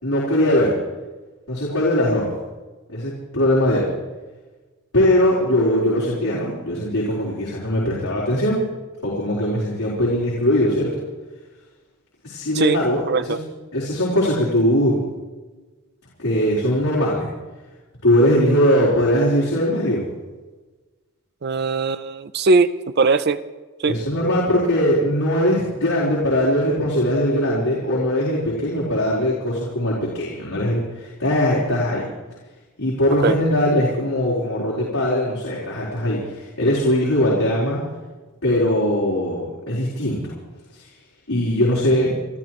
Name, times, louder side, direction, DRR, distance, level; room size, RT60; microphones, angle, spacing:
voice 1, 0.0-0.7 1.5-2.3 2.9-3.9 4.9-8.6 9.0-10.9 12.2-13.4 13.7-15.0 16.2-17.3 18.0-20.0 23.8-32.1 32.8-37.8 38.4-40.3 40.7-40.9 41.3-42.1, equal, 85° left, -7 dB, 4.3 m, -20 dB
voice 2, 13.1-13.4 21.4-22.7 23.0-23.4 23.8-24.0 33.2-33.4, right 4 dB, 45° right, 12 dB, 0.5 m, -19 dB
29.5 x 13.0 x 3.1 m, 1.3 s
head